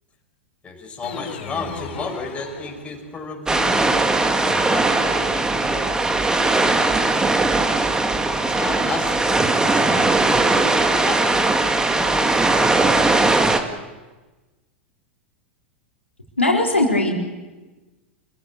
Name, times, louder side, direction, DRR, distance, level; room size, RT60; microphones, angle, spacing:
voice 1, 0.6-7.3 8.4-12.9, left 3 dB, 20° left, 0 dB, 6.1 m, -33 dB
sound 1, 1.0-3.3, left 5 dB, 55° left, 4.8 m, -35 dB
sound 2, 3.5-13.6, right 2 dB, 10° right, 2.0 m, -19 dB
voice 2, 16.4-17.1, left 2 dB, 85° left, -2 dB, 4.3 m, -18 dB
26.5 x 15.5 x 8.7 m, 1.2 s
figure-of-eight pair, 95°, 7 cm